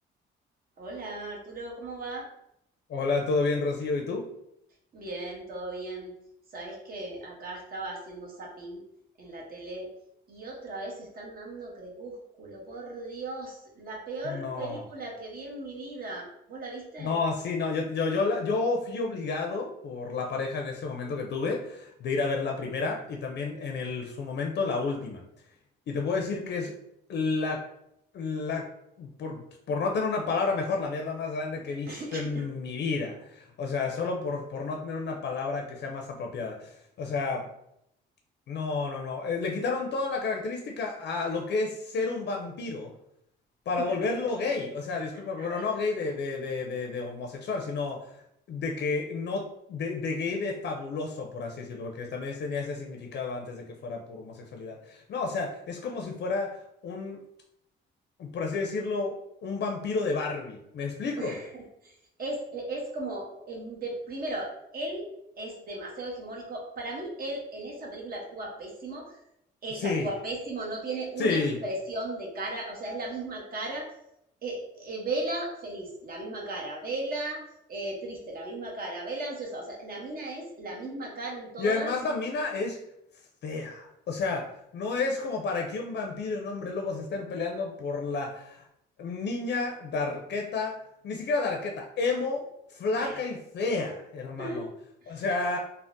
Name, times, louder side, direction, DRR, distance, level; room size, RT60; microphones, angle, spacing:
voice 1, 0.8-2.3 4.9-6.1 6.5-8.8 9.2-9.9 10.3-17.2 31.9-32.4 43.8-44.3 45.4-45.6 61.2-61.9 62.2-65.0 65.4-69.1 69.6-73.9 74.4-77.4 77.7-81.9 92.9-93.2 94.4-94.6 95.0-95.2, right 2 dB, 50° right, -2 dB, 0.9 m, -36 dB
voice 2, 2.9-4.3 14.2-14.8 17.0-25.2 25.9-26.7 27.1-27.6 28.1-28.6 29.0-37.5 38.5-42.9 43.7-48.0 48.5-49.4 49.7-57.2 58.2-59.1 59.4-61.4 69.8-70.1 71.2-71.6 81.6-82.8 83.4-84.4 84.7-88.7 89.0-90.8 91.0-94.7 95.1-95.6, left 4 dB, 60° left, 2 dB, 0.4 m, -31 dB
3.5 x 2.0 x 2.6 m, 0.78 s
cardioid pair, 90°, 20 cm